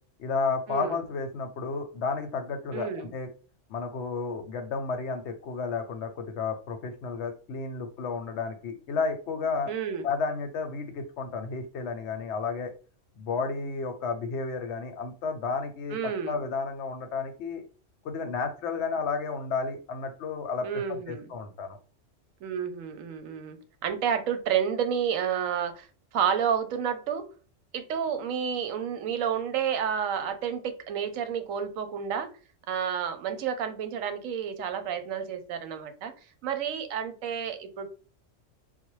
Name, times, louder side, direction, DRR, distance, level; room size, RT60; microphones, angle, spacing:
voice 1, 0.2-3.3 3.7-9.7 10.0-12.7 13.2-17.6 18.0-21.8, left 4 dB, 65° left, 7 dB, 0.8 m, -32 dB
voice 2, 2.7-3.1 9.7-10.1 15.9-16.4 20.6-21.3 22.4-23.6 23.8-27.2 27.7-32.3 32.7-36.1 36.4-37.9, right 8 dB, 85° right, 9 dB, 1.0 m, -30 dB
4.0 x 2.1 x 3.1 m, 0.37 s
omnidirectional pair, 1.3 m